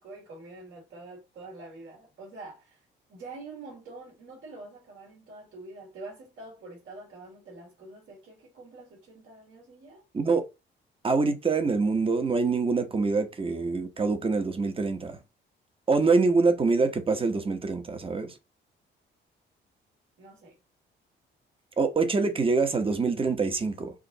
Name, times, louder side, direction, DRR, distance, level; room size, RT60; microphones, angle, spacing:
voice 1, 0.0-2.8 3.1-10.0 20.2-20.6, right 3 dB, 75° right, 2.7 m, -46 dB
voice 2, 10.1-10.4 11.0-15.2 15.9-18.3 21.8-23.9, right 4 dB, 25° right, 1.0 m, -25 dB
5.0 x 2.5 x 3.9 m
cardioid pair, 90°, 20 cm